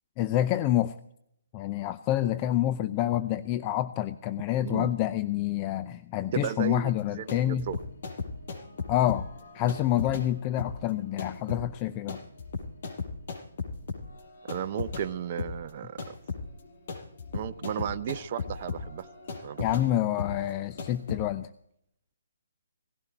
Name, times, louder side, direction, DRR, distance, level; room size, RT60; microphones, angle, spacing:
voice 1, 0.2-0.9 1.5-7.7 8.9-9.3 9.5-12.2 19.6-21.5, left 13 dB, 30° left, 12 dB, 0.6 m, -27 dB
voice 2, 6.3-7.8 14.5-16.1 17.3-19.1 19.4-19.6, right 9 dB, 40° right, 10 dB, 0.6 m, -34 dB
sound 1, 6.9-15.1 15.4-21.2, left 4 dB, 55° left, 5.8 m, -37 dB
18.0 x 16.0 x 4.4 m, 0.73 s
figure-of-eight pair, 140°, 0 cm